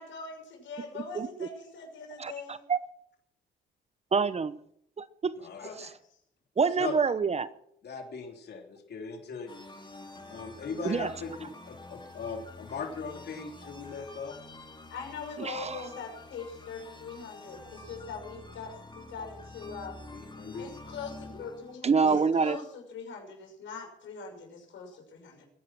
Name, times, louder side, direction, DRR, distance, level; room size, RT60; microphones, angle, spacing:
voice 1, 0.0-2.7 5.6-5.9 14.9-20.0 20.6-25.5, left 5 dB, 75° left, 6.4 m, -42 dB
voice 2, 0.9-1.5 2.2-2.8 4.1-4.5 5.0-5.3 5.8-5.9 6.6-7.5 10.8-11.1 15.4-15.8 21.8-22.6, right 5 dB, 30° right, 0.8 m, -27 dB
voice 3, 5.4-5.7 6.8-7.0 7.8-9.5 10.3-14.4 20.1-20.7 22.0-22.2, left 5 dB, 55° left, 3.3 m, -39 dB
sound 1, 9.5-21.8, left 2 dB, 25° left, 2.2 m, -48 dB
22.0 x 10.0 x 6.1 m
cardioid pair, 90°, 20 cm